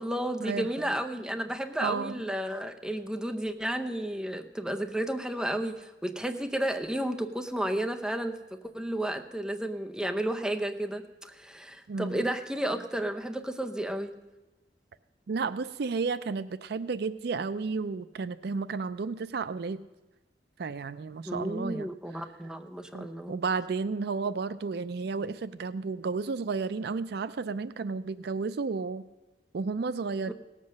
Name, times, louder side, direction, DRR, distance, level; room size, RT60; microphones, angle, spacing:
voice 1, 0.0-8.4 8.7-14.2 21.3-23.4 30.3-30.4, right 1 dB, 5° right, 6 dB, 0.7 m, -32 dB
voice 2, 1.8-2.1 11.9-12.3 15.3-19.8 20.6-21.9 22.9-29.0 29.5-30.3, right 4 dB, 65° right, 15 dB, 0.4 m, -32 dB
17.5 x 7.5 x 6.4 m, 1.1 s
head